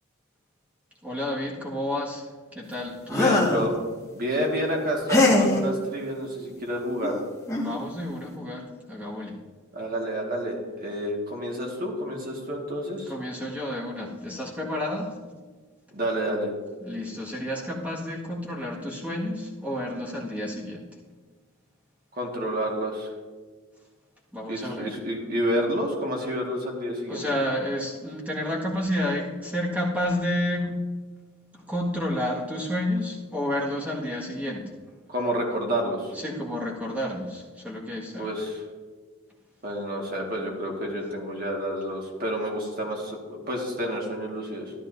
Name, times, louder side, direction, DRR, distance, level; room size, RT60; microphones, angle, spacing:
voice 1, 1.0-3.5 7.6-9.4 13.1-15.2 16.8-20.9 24.3-25.0 27.1-30.8 31.5-34.7 36.1-38.3, left 1 dB, 5° right, -4 dB, 1.7 m, -30 dB
sound 1, 3.1-3.7 5.1-5.6 7.0-7.1 7.5-7.7, left 2 dB, 15° left, 1.7 m, -21 dB
voice 2, 3.1-3.7 4.1-7.2 9.7-13.1 15.9-16.5 22.1-23.1 24.5-27.2 35.1-36.1 38.2-38.6 39.6-44.7, equal, 40° right, -1 dB, 1.7 m, -29 dB
13.5 x 11.5 x 2.7 m, 1.4 s
head